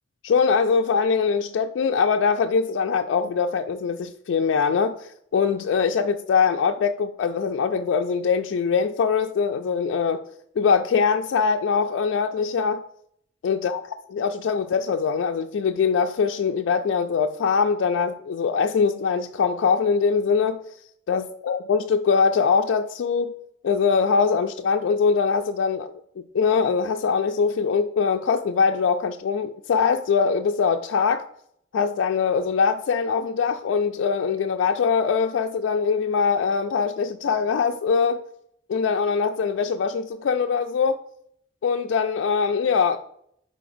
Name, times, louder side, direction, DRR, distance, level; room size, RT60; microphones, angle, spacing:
voice 1, 0.2-10.2 10.6-12.8 13.4-13.8 14.1-20.6 21.1-23.3 23.6-25.9 26.3-31.3 31.7-38.2 38.7-41.0 41.6-43.0, left 5 dB, 90° left, 0.3 m, -22 dB
9.7 x 3.8 x 2.6 m
head